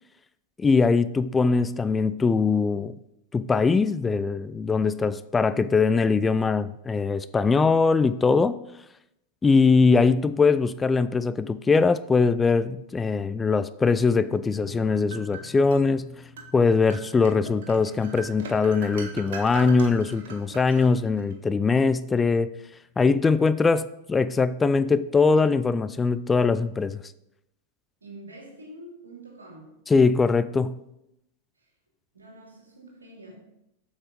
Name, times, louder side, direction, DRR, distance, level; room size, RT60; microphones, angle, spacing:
voice 1, 0.6-2.9 3.3-8.6 9.4-16.1 16.5-22.5 23.0-27.0 29.9-30.8, left 4 dB, 15° left, 0.3 m, -22 dB
Guitar, 14.5-23.8, left 4 dB, 20° right, 2.6 m, -52 dB
sound 1, 14.5-15.8 16.4-16.5 16.9-21.3, right 4 dB, 55° right, 1.6 m, -41 dB
voice 2, 28.0-29.8 31.6-31.7 32.1-33.4, right 1 dB, 75° right, 2.5 m, -46 dB
7.9 x 6.4 x 5.1 m
figure-of-eight pair, 90°, 0 cm